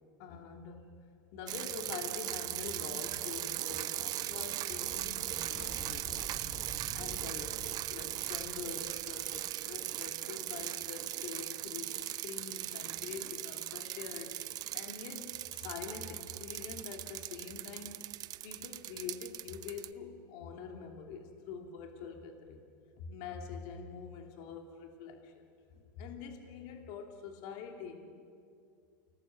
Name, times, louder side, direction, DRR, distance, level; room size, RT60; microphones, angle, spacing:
voice 1, 0.2-0.9 1.3-6.2 6.9-18.1 18.4-22.6 23.0-25.5 25.7-28.2, left 6 dB, 50° left, 4 dB, 2.9 m, -45 dB
sound 1, 1.5-19.9, right 14 dB, 35° right, 0.7 m, -39 dB
sound 2, 4.8-10.7, equal, 10° left, 3.9 m, -49 dB
29.0 x 19.0 x 7.7 m, 2.4 s
supercardioid pair, 135°, 11 cm